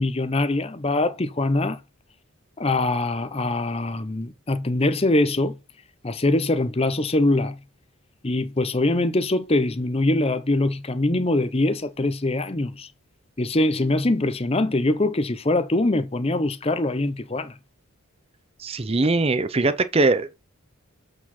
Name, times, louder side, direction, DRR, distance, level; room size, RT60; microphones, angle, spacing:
voice 1, 0.0-1.8 2.6-5.6 6.0-7.6 8.2-12.9 13.4-17.5, left 2 dB, 25° left, 0.7 m, -23 dB
voice 2, 18.6-20.4, right 3 dB, 25° right, 0.5 m, -21 dB
8.0 x 4.8 x 4.2 m
head